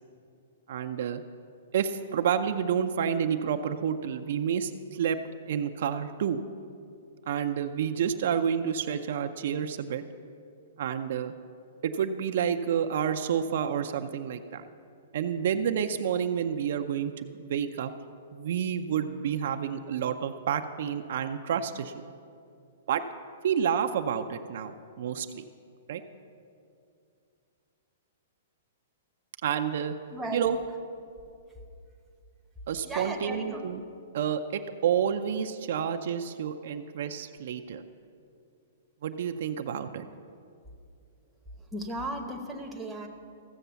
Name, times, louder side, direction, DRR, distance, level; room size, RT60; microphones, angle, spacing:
voice 1, 0.7-1.2 1.7-5.2 5.5-6.4 7.3-10.0 10.8-11.3 11.8-14.7 15.1-17.9 18.3-21.9 22.9-23.0 23.4-25.4 25.9-26.0 29.4-30.0 30.3-30.6 32.7-33.8 34.1-37.8 39.0-40.1, right 8 dB, 55° right, 7 dB, 0.5 m, -29 dB
voice 2, 30.1-30.6 32.8-33.7 41.7-43.1, right 1 dB, 5° right, 0 dB, 0.8 m, -35 dB
14.5 x 7.1 x 6.8 m, 2.5 s
hypercardioid pair, 165°, 0 cm